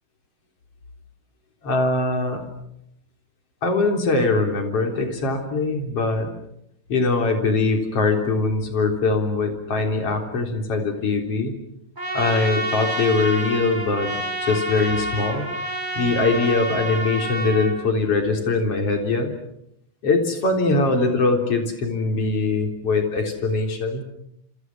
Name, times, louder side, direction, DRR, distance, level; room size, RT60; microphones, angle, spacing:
voice 1, 1.6-2.4 3.6-6.3 6.9-11.6 12.1-15.5 15.9-19.3 20.0-24.0, left 3 dB, 45° left, 4 dB, 4.5 m, -22 dB
Trumpet, 12.0-17.7, right 1 dB, 15° right, 4.5 m, -28 dB
28.0 x 27.0 x 6.2 m, 0.79 s
omnidirectional pair, 3.9 m